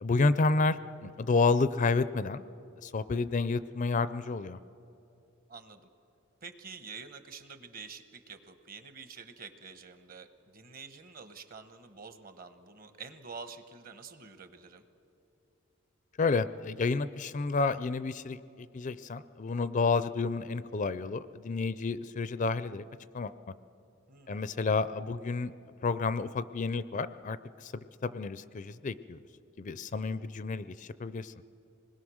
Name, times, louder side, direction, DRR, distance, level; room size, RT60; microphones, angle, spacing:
voice 1, 0.0-2.4 2.8-4.6 16.2-22.8 23.1-23.3 24.3-25.5 25.8-29.2 29.6-31.3, left 4 dB, 35° left, 14 dB, 0.4 m, -30 dB
voice 2, 5.5-5.9 6.4-14.8 24.1-24.6, right 5 dB, 45° right, 10 dB, 1.1 m, -48 dB
26.5 x 20.5 x 6.3 m, 2.7 s
head